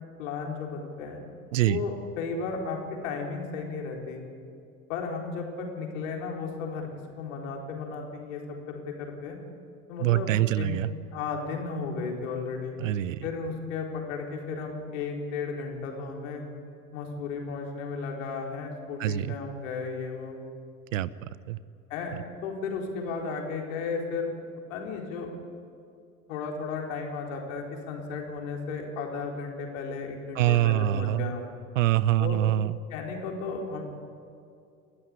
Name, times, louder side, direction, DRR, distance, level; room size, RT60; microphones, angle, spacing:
voice 1, 0.2-1.2 1.7-4.2 4.9-6.9 7.2-8.4 8.7-9.4 9.9-10.8 11.1-12.7 13.2-16.4 16.9-20.3 21.9-24.3 24.7-25.3 26.3-31.5 32.2-32.4 32.9-33.8, left 4 dB, 60° left, 1 dB, 4.3 m, -34 dB
voice 2, 10.0-10.9 12.8-13.2 19.0-19.3 20.9-21.1 21.5-21.6 30.4-31.3 31.8-32.8, right 13 dB, 60° right, 19 dB, 0.8 m, -24 dB
30.0 x 13.5 x 9.7 m, 2.4 s
figure-of-eight pair, 80°, 44 cm